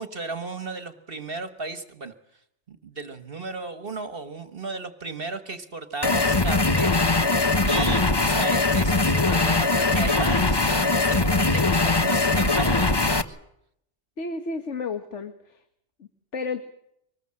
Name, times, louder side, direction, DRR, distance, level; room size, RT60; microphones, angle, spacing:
voice 1, 0.0-2.1 2.7-7.0 7.3-13.4, right 3 dB, 55° right, 11 dB, 1.7 m, -35 dB
sound 1, 6.0-13.2, left 3 dB, 20° left, 1.1 m, -21 dB
voice 2, 14.2-15.6 16.0-16.6, left 4 dB, 85° left, 9 dB, 1.8 m, -32 dB
25.0 x 20.0 x 7.6 m, 0.75 s
omnidirectional pair, 1.2 m